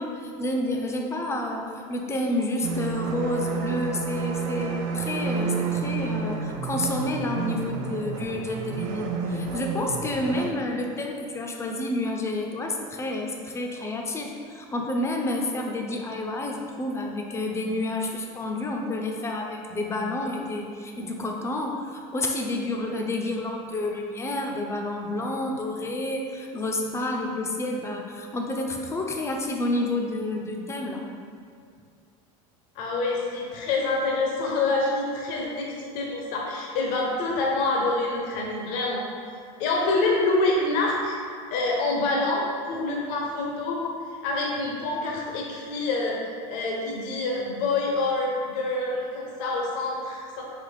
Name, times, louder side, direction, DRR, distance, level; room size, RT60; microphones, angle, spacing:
voice 1, 0.0-31.0, left 1 dB, 15° left, 2 dB, 0.4 m, -29 dB
sound 1, 2.6-10.5, right 5 dB, 65° right, 0.4 m, -30 dB
voice 2, 32.8-39.0 39.6-41.2 41.5-44.0 44.2-46.2 46.5-50.4, left 2 dB, 70° left, -2 dB, 0.7 m, -26 dB
4.1 x 2.9 x 3.2 m, 2.2 s
supercardioid pair, 120°, 18 cm